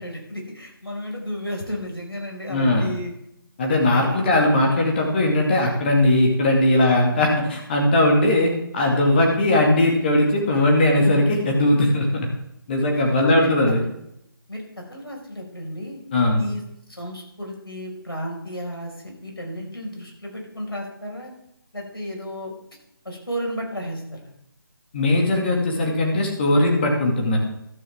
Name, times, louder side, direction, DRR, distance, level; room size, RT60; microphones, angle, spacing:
voice 1, 0.0-3.1 4.1-4.2 12.9-13.6 14.5-16.0 16.4-16.6 16.9-21.3 21.7-22.5 23.0-24.0, equal, 85° left, 0 dB, 5.1 m, -33 dB
voice 2, 2.5-2.9 3.6-12.3 12.7-13.8 16.1-16.5 24.9-27.4, left 1 dB, 25° left, 0 dB, 2.0 m, -19 dB
13.0 x 13.0 x 3.6 m, 0.79 s
figure-of-eight pair, 155°, 12 cm